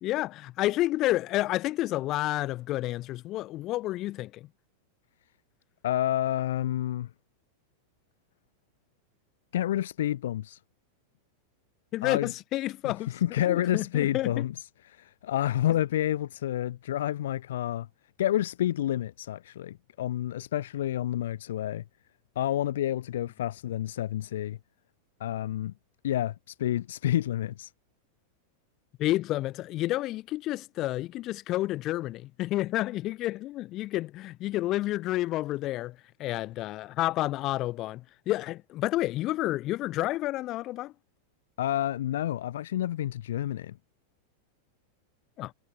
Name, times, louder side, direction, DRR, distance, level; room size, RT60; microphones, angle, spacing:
voice 1, 0.0-4.5 11.9-13.1 13.5-14.4 29.0-40.9 45.4-45.5, left 16 dB, 35° left, 3.7 m, -30 dB
voice 2, 5.8-7.1 9.5-10.6 12.0-12.3 12.8-17.9 18.2-21.8 22.4-24.6 25.2-25.7 26.0-27.7 41.6-43.8, left 12 dB, 60° left, 2.1 m, -29 dB
figure-of-eight pair, 90°, 0 cm